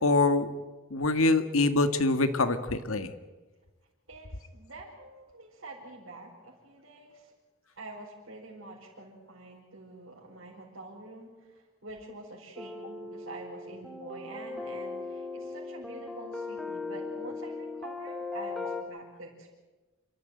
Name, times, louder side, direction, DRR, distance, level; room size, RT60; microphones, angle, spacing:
voice 1, 0.0-0.5 0.9-3.1, left 2 dB, 75° left, 9 dB, 1.7 m, -24 dB
voice 2, 4.1-7.3 7.8-19.5, right 2 dB, 65° right, -5 dB, 5.1 m, -46 dB
sound 1, 12.6-18.8, left 3 dB, ahead, 2.3 m, -38 dB
28.5 x 13.5 x 9.1 m, 1.2 s
head